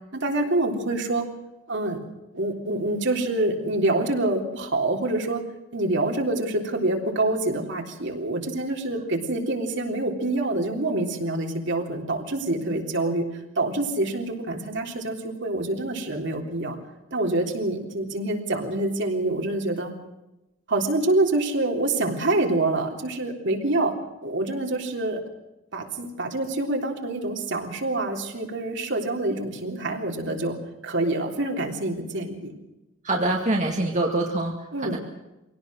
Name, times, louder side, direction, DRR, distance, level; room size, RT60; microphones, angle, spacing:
voice 1, 0.1-1.3 1.7-2.0 2.3-5.4 5.7-13.2 13.5-16.8 17.1-19.9 20.7-23.9 24.2-25.2 25.7-30.6 30.8-32.5 34.7-35.0, right 2 dB, 65° right, 2 dB, 3.5 m, -26 dB
voice 2, 33.0-35.0, right 2 dB, 35° right, 1 dB, 2.1 m, -25 dB
24.0 x 18.0 x 6.4 m, 0.97 s
head